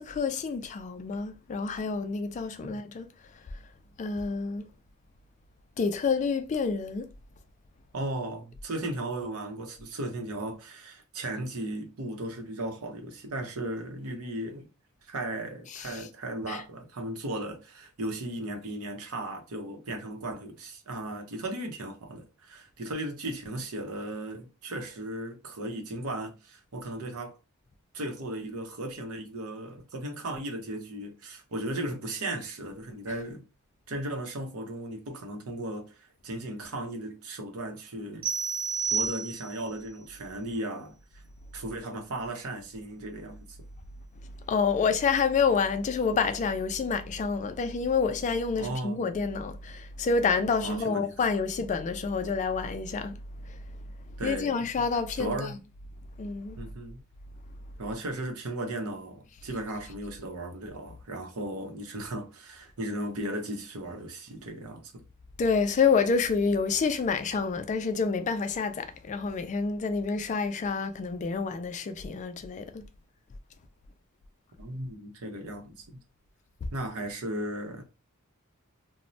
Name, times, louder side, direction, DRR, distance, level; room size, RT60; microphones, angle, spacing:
voice 1, 0.0-3.1 4.0-4.6 5.8-7.1 15.7-16.0 16.5-16.6 44.5-53.2 53.5-53.6 54.2-55.5 56.2-56.6 65.4-72.8, left 5 dB, 35° left, 0.3 m, -28 dB
voice 2, 7.9-14.7 15.0-27.3 27.9-33.4 33.9-36.0 36.2-38.3 38.9-41.2 41.5-43.6 48.6-49.1 50.6-51.1 54.2-54.7 55.2-55.6 56.6-57.0 57.8-65.0 74.6-76.0 76.7-77.8, right 1 dB, 70° right, 0.7 m, -36 dB
sound 1, 38.2-39.7, right 5 dB, 25° right, 0.7 m, -30 dB
3.0 x 2.1 x 2.6 m
head